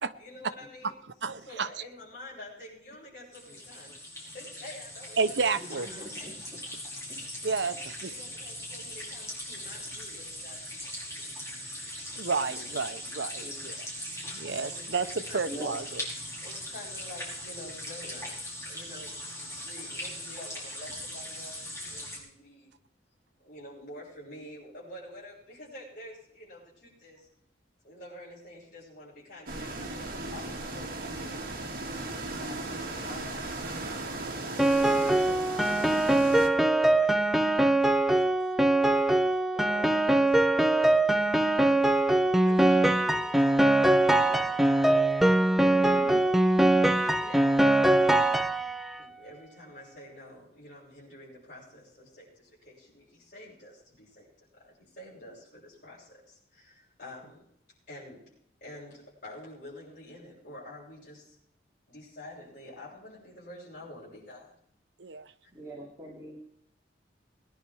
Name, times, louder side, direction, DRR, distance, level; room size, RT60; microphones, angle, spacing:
voice 1, 0.2-1.0 1.3-5.3 5.7-6.7 8.0-11.3 14.6-14.8 15.3-15.5 16.4-18.3 18.7-22.7 23.4-27.3 27.8-31.3 32.4-34.5 35.0-39.2 39.5-45.3 46.0-46.4 46.9-48.2 49.0-54.3 54.5-57.4 57.9-58.3 58.6-61.4 61.9-64.5, left 1 dB, 50° left, -9 dB, 7.6 m, -48 dB
voice 2, 1.2-1.8 5.2-5.9 7.4-8.1 11.9-16.0 32.1-32.3 40.7-40.8 45.7-46.2 65.0-65.3, right 4 dB, 75° right, 11 dB, 0.8 m, -32 dB
sound 1, 3.3-22.2, left 1 dB, 15° left, 5.5 m, -40 dB
voice 3, 5.8-6.6 7.1-7.2 11.5-11.6 13.4-13.6 15.5-15.8 44.2-45.1 65.5-66.4, right 1 dB, 20° right, -4 dB, 2.8 m, -44 dB
sound 2, 29.5-36.5, right 2 dB, 55° right, 2.1 m, -36 dB
Piano, 34.6-49.0, right 1 dB, ahead, 0.6 m, -23 dB
20.0 x 10.5 x 4.8 m, 0.71 s
head